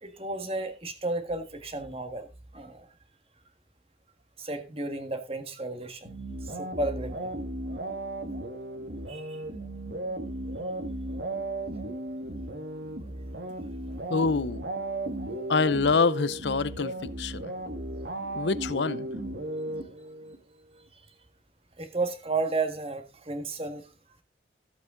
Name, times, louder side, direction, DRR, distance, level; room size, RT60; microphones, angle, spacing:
voice 1, 0.0-2.3 2.5-2.8 4.4-6.1 6.6-7.4 9.1-9.4 21.8-23.8, right 3 dB, 35° right, 1.7 m, -33 dB
sound 1, 6.0-20.4, right 1 dB, 75° right, 1.9 m, -35 dB
voice 2, 14.1-14.6 15.5-17.5 18.3-19.1, left 4 dB, 85° left, 0.7 m, -26 dB
14.5 x 8.3 x 3.9 m
head